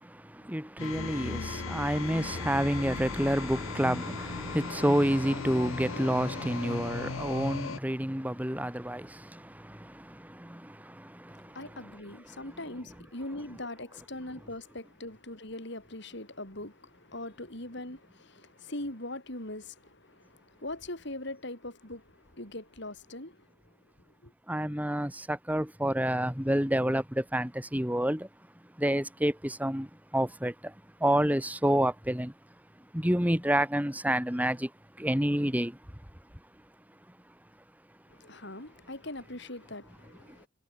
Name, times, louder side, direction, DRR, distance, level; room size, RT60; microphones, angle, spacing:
voice 1, 0.0-11.7 24.5-28.3 28.8-30.7 31.0-32.3 32.9-34.7 35.0-35.8, equal, 10° right, 2.6 m, -29 dB
sound 1, 0.8-7.8, left 4 dB, 75° left, 0.8 m, -37 dB
voice 2, 11.3-23.7 24.2-24.3 38.1-40.5, left 1 dB, 55° left, 5.4 m, -41 dB
head